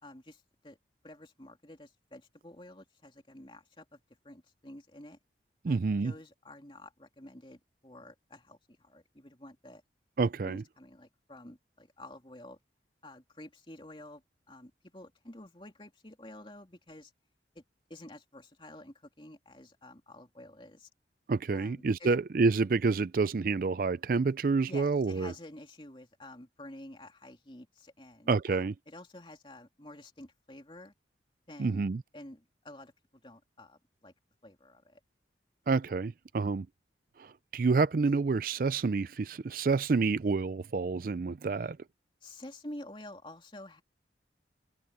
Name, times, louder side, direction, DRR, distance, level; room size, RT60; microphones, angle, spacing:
voice 1, 0.0-0.8 1.0-4.0 4.2-5.2 5.7-9.8 10.4-12.6 13.0-14.2 14.5-17.1 17.5-17.6 17.9-20.9 21.5-22.1 24.7-30.9 31.5-31.8 32.1-34.1 34.4-35.0 42.2-43.8, left 1 dB, 30° left, 3.1 m, -50 dB
voice 2, 5.6-6.1 10.2-10.6 21.3-25.3 28.3-28.7 31.6-32.0 35.7-36.7 37.2-41.8, right 4 dB, 50° right, 0.4 m, -28 dB
head